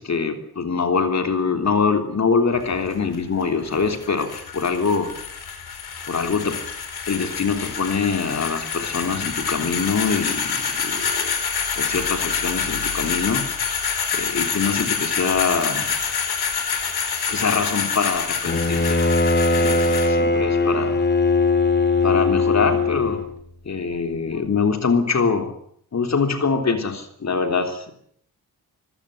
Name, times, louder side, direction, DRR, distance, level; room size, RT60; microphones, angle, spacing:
voice 1, 0.0-5.1 6.0-6.6 7.1-11.3 11.7-13.5 14.1-15.9 17.3-19.0 19.6-21.0 22.0-23.3 23.6-25.5 25.9-27.9, left 5 dB, 45° left, 6 dB, 3.4 m, -24 dB
sound 1, 2.5-20.1, left 6 dB, 80° left, 4.6 m, -27 dB
Bowed string instrument, 18.5-23.3, left 3 dB, 30° left, 2.4 m, -20 dB
26.0 x 15.0 x 8.9 m, 0.66 s
wide cardioid pair, 150°, 37 cm